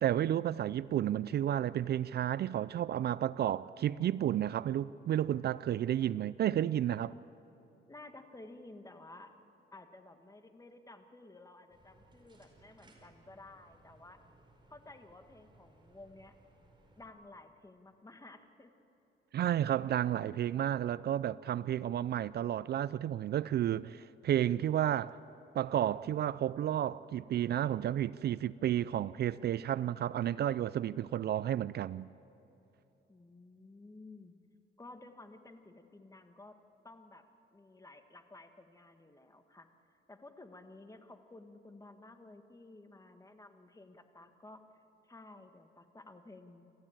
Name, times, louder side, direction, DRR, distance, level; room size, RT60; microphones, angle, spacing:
voice 1, 0.0-7.2 19.3-25.2 25.5-32.1, right 11 dB, 55° right, 0.4 m, -32 dB
voice 2, 7.9-9.3 9.7-14.2 14.7-16.3 17.0-18.7 33.1-34.3 34.8-36.6 36.8-37.2 37.5-39.7 40.1-44.6 45.0-46.7, left 2 dB, 15° left, 1.7 m, -54 dB
sound 1, 11.7-17.1, right 2 dB, 25° right, 4.7 m, -63 dB
27.5 x 14.5 x 9.0 m
cardioid pair, 90°, 20 cm